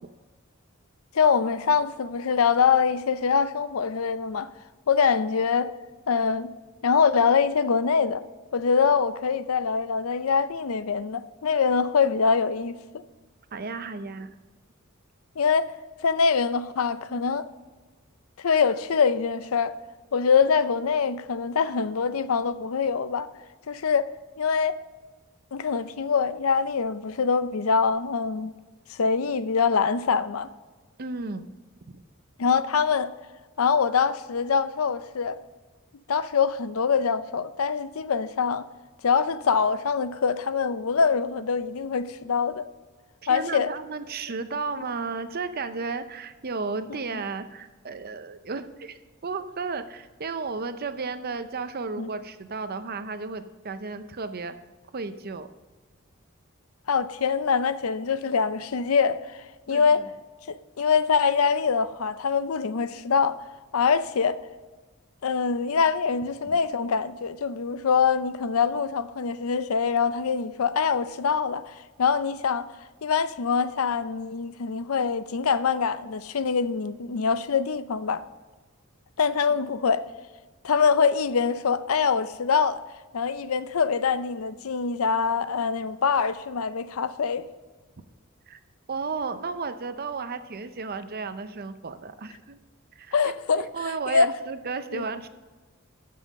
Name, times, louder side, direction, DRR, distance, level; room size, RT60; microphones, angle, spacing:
voice 1, 1.1-4.5 4.9-5.7 6.1-6.5 6.8-8.2 8.5-12.8 15.4-15.7 16.0-17.5 18.4-19.7 20.1-23.3 23.7-24.1 24.4-24.8 25.5-28.5 28.9-30.5 32.4-33.1 33.6-35.4 36.1-38.7 39.0-42.6 43.3-43.7 52.0-52.1 56.9-60.0 60.5-63.4 63.7-64.4 65.2-71.7 72.0-72.7 73.0-78.2 79.2-80.0 80.6-82.8 83.1-87.4 93.1-93.6 94.1-94.3 94.9-95.0, left 5 dB, 80° left, 0.5 m, -24 dB
voice 2, 13.5-14.3 31.0-31.5 43.2-54.6 54.9-55.5 59.7-60.1 66.5-66.6 88.5-88.6 88.9-92.6 93.0-93.1 93.7-95.3, right 4 dB, 45° right, 0.6 m, -33 dB
14.0 x 5.6 x 5.2 m
head